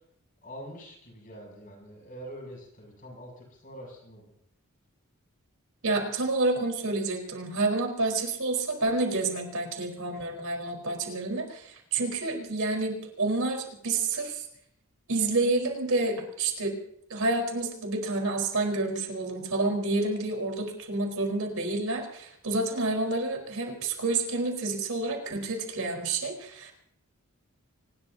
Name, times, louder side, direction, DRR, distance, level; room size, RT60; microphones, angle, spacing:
voice 1, 0.4-4.3, equal, 40° left, 1 dB, 7.7 m, -45 dB
voice 2, 5.8-14.4 15.1-16.8 17.1-26.7, right 2 dB, 85° right, 2 dB, 4.5 m, -29 dB
25.0 x 20.5 x 2.8 m, 0.71 s
head